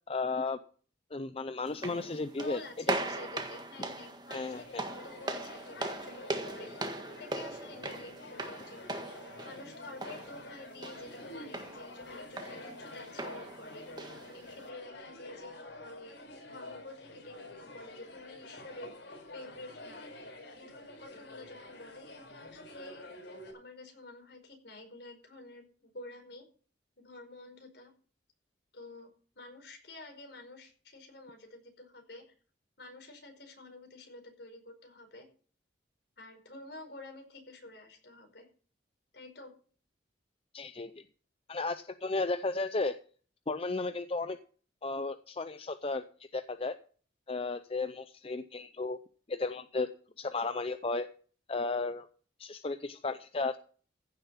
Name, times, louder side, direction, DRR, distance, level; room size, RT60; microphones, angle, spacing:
voice 1, 0.1-0.6 1.1-2.6 2.9-3.0 4.3-4.8 40.5-41.0 41.5-43.0 43.5-44.4 44.8-46.0 46.3-46.8 47.3-49.0 49.3-49.9 50.2-51.1 51.5-52.1 52.4-53.6, left 3 dB, 30° left, 11 dB, 0.6 m, -34 dB
sound 1, 1.7-14.7, right 2 dB, 25° right, 1.6 m, -40 dB
voice 2, 2.4-6.9 7.2-20.0 20.5-23.1 23.5-26.4 27.0-27.9 28.7-29.1 29.3-32.2 32.8-35.3 36.2-38.5 39.1-39.5, left 2 dB, 65° left, 3 dB, 5.2 m, -49 dB
sound 2, 4.4-23.5, left 1 dB, 80° left, 4.4 m, -48 dB
15.5 x 7.3 x 5.7 m, 0.43 s
head